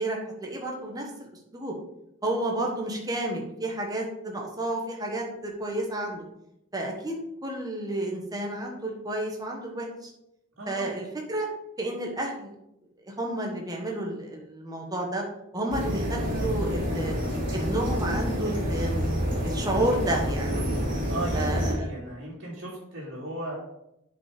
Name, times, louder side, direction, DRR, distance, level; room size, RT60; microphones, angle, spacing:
voice 1, 0.0-1.7 2.2-6.2 6.7-7.1 7.4-9.9 10.7-11.5 11.8-12.5 13.2-15.2 15.5-17.1 17.5-19.1 19.4-20.5 21.3-21.9, right 1 dB, 15° right, 0 dB, 1.3 m, -31 dB
voice 2, 10.6-11.0 21.1-23.6, right 1 dB, 55° right, -8 dB, 2.4 m, -36 dB
sound 1, 15.7-21.7, equal, 40° right, 2.7 m, -28 dB
8.0 x 5.2 x 5.1 m, 0.82 s
head